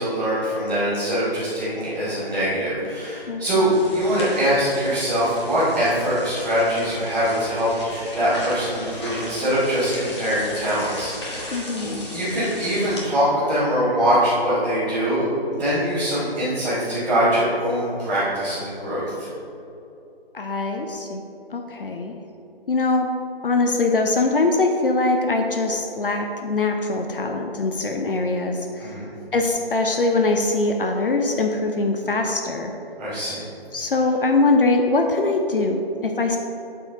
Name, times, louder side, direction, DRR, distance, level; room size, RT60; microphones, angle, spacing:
voice 1, 0.0-11.5 11.8-15.3 15.6-19.3 28.8-29.1 33.0-33.4, equal, 5° right, -17 dB, 0.7 m, -23 dB
voice 2, 3.3-3.8 11.5-12.1 20.3-21.2 21.5-22.1 22.7-23.1 23.4-29.0 29.3-32.7 33.7-36.4, left 3 dB, 60° left, 4 dB, 0.7 m, -22 dB
sound 1, 3.7-13.0, left 1 dB, 25° left, 1.4 m, -36 dB
12.0 x 4.5 x 3.5 m, 2.9 s
figure-of-eight pair, 160°, 31 cm